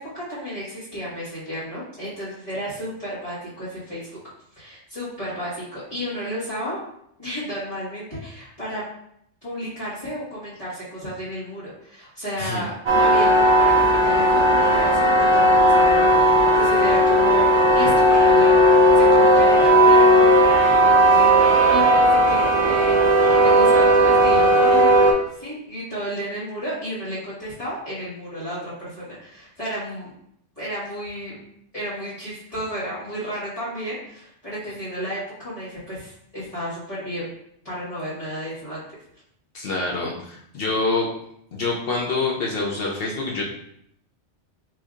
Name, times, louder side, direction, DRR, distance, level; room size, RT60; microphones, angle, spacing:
voice 1, 0.0-4.1 4.5-6.8 7.2-8.8 9.4-30.1 30.6-31.3 31.7-37.3 37.6-38.8, equal, 30° left, -13 dB, 1.4 m, -32 dB
sound 1, 12.9-25.1, right 1 dB, 45° right, 0.3 m, -16 dB
voice 2, 39.5-41.1 41.5-43.4, left 3 dB, 60° left, -2 dB, 0.8 m, -26 dB
4.4 x 2.7 x 2.4 m, 0.73 s
omnidirectional pair, 1.2 m